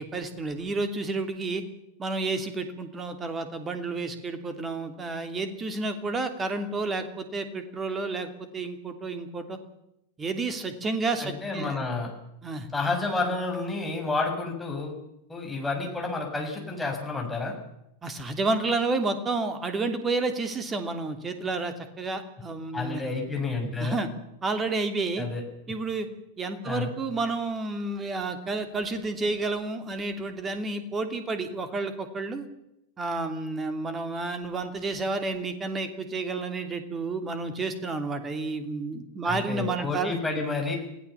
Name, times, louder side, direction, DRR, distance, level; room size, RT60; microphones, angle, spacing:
voice 1, 0.0-1.6 2.0-9.6 10.2-11.8 12.4-12.7 18.0-23.0 23.8-24.1 24.4-25.3 25.7-26.1 26.4-32.5 33.0-40.2, right 3 dB, 20° right, 8 dB, 3.0 m, -30 dB
voice 2, 11.2-12.1 12.7-15.0 15.3-17.5 22.7-24.0 25.2-25.4 26.6-26.9 39.2-40.8, left 3 dB, 5° left, 1 dB, 6.7 m, -30 dB
28.0 x 17.0 x 7.1 m, 0.84 s
figure-of-eight pair, 90°, 0 cm